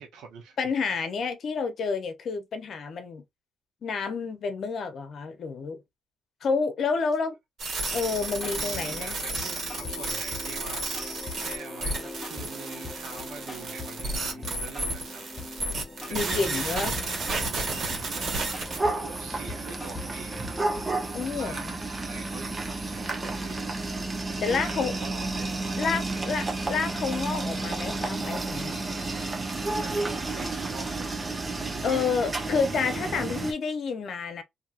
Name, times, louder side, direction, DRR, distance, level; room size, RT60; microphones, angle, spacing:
voice 1, 0.0-0.8 8.5-10.9 11.3-15.2 16.1-18.5 19.0-20.6 21.3-21.6 21.9-23.7 24.5-26.5 29.8-31.1 31.6-32.1, right 6 dB, 85° right, 0.9 m, -44 dB
voice 2, 0.6-3.2 3.8-5.8 6.4-7.3 7.9-9.2 16.1-17.0 21.1-21.8 24.4-25.0 25.8-28.7 31.8-34.4, left 5 dB, 60° left, 0.8 m, -29 dB
sound 1, 7.6-18.8, right 2 dB, 55° right, 1.6 m, -32 dB
sound 2, 7.9-20.9, left 3 dB, 15° left, 1.1 m, -42 dB
sound 3, 16.2-33.5, right 2 dB, 25° right, 0.9 m, -32 dB
2.8 x 2.8 x 2.5 m
cardioid pair, 90°, 0 cm